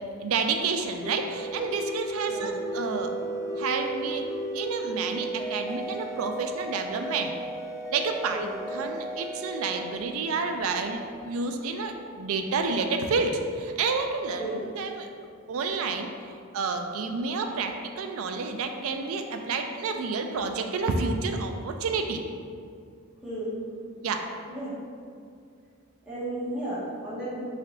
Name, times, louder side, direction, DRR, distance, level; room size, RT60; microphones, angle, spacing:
voice 1, 0.2-3.1 3.6-4.2 4.5-7.3 7.9-8.5 8.7-15.1 15.5-16.1 16.5-22.2 24.0-24.2, right 4 dB, 70° right, 5 dB, 0.4 m, -29 dB
sound 1, 0.8-11.1, right 2 dB, 15° left, 0.3 m, -35 dB
voice 2, 23.2-23.5 24.5-24.7 26.0-27.4, right 1 dB, 5° right, -12 dB, 1.3 m, -34 dB
3.4 x 3.3 x 3.7 m, 2.3 s
head